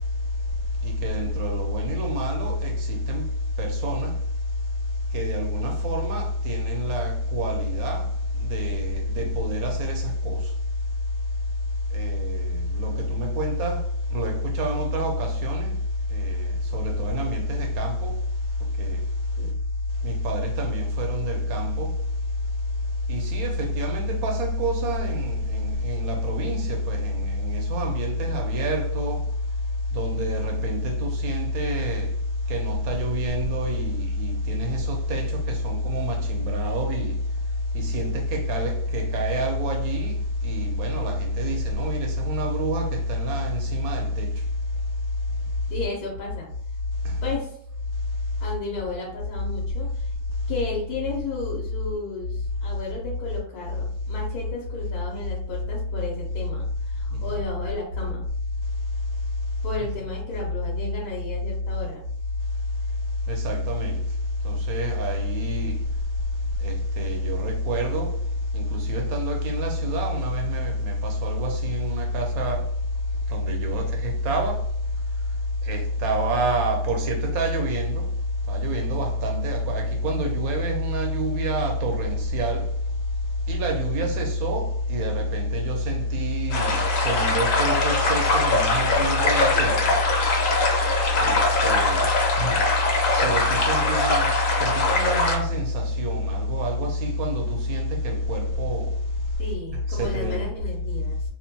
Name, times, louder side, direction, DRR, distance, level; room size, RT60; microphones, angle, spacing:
voice 1, 0.8-3.3 3.6-4.1 5.1-8.0 8.4-10.4 11.9-13.8 14.1-15.7 16.1-18.1 18.8-19.0 20.0-21.9 23.1-29.2 29.9-32.1 32.5-37.2 37.7-40.2 40.4-44.3 47.0-47.1 57.1-57.2 63.3-64.0 64.4-65.8 66.6-68.2 68.5-72.6 73.3-74.6 75.7-78.1 78.5-82.7 83.5-89.8 91.2-92.1 92.4-92.6 93.2-94.3 94.6-98.9 99.9-100.4, equal, 75° right, 1.1 m, -26 dB
voice 2, 45.7-46.5 47.2-47.6 48.4-50.1 50.5-58.3 59.6-62.0 99.4-101.2, left 3 dB, 85° left, 1.2 m, -33 dB
sound 1, 86.5-95.4, left 2 dB, 65° left, 1.0 m, -22 dB
2.9 x 2.1 x 2.6 m
omnidirectional pair, 1.6 m